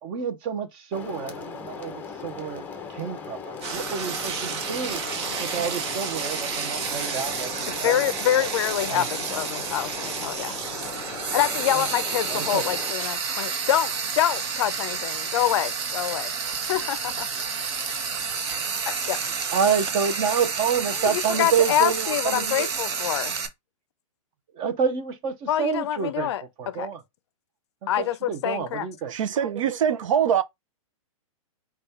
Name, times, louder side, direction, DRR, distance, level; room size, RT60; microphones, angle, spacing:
voice 1, 0.0-5.0 5.4-8.0 8.4-8.5 8.9-9.1 11.7-11.9 12.3-12.6 18.6-18.7 19.5-22.7 24.5-26.3 26.6-27.0 27.8-29.1, right 7 dB, 25° right, 0.7 m, -28 dB
sound 1, 0.9-12.9, left 6 dB, 10° left, 0.6 m, -38 dB
Frying (food), 3.6-23.5, right 5 dB, 50° right, 1.0 m, -30 dB
voice 2, 7.8-10.6 11.3-16.3 16.7-17.4 18.9-19.2 21.0-23.3 25.5-26.9 27.9-28.9, left 11 dB, 50° left, 0.5 m, -26 dB
voice 3, 29.1-30.4, right 8 dB, 65° right, 0.6 m, -23 dB
5.2 x 2.3 x 4.2 m
hypercardioid pair, 155°, 18 cm